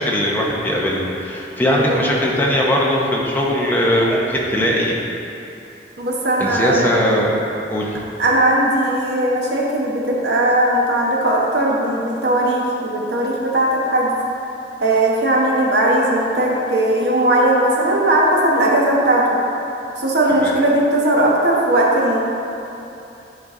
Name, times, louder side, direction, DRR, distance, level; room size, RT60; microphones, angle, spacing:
voice 1, 0.0-4.9 6.4-7.3 7.7-8.0 20.4-20.5, equal, 10° left, -3 dB, 0.8 m, -19 dB
voice 2, 1.8-2.2 6.0-7.0 8.2-14.1 14.8-19.4 20.0-22.2, right 1 dB, 65° right, -3 dB, 1.1 m, -18 dB
9.9 x 4.0 x 3.7 m, 2.8 s
head